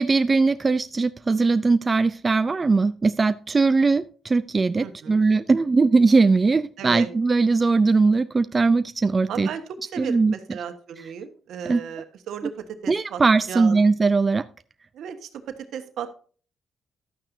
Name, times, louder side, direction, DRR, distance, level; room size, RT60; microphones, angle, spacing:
voice 1, 0.0-9.5 10.0-10.3 11.7-11.8 12.9-14.4, right 4 dB, 30° right, 12 dB, 0.4 m, -20 dB
voice 2, 4.8-5.2 6.8-7.1 9.3-9.6 9.9-13.2 13.5-13.8 14.9-16.1, right 8 dB, 75° right, 8 dB, 1.3 m, -35 dB
12.0 x 8.9 x 2.7 m, 0.42 s
cardioid pair, 90°, 0 cm